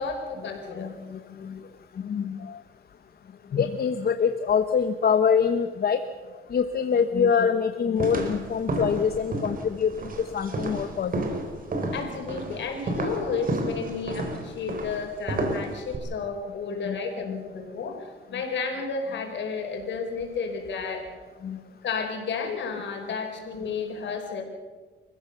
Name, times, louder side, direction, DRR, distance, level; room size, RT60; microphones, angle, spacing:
voice 1, 0.0-0.9 11.9-21.0 21.8-24.4, left 5 dB, 65° left, 3 dB, 5.2 m, -32 dB
voice 2, 0.8-1.6 2.0-2.6 3.5-6.0 6.5-11.1 16.8-17.0 17.3-17.4 21.4-21.6 24.0-24.1, left 6 dB, 50° left, 9 dB, 1.2 m, -25 dB
sound 1, 8.0-16.0, right 2 dB, 45° right, 4.7 m, -31 dB
29.0 x 15.5 x 6.9 m, 1.4 s
cardioid pair, 90°, 20 cm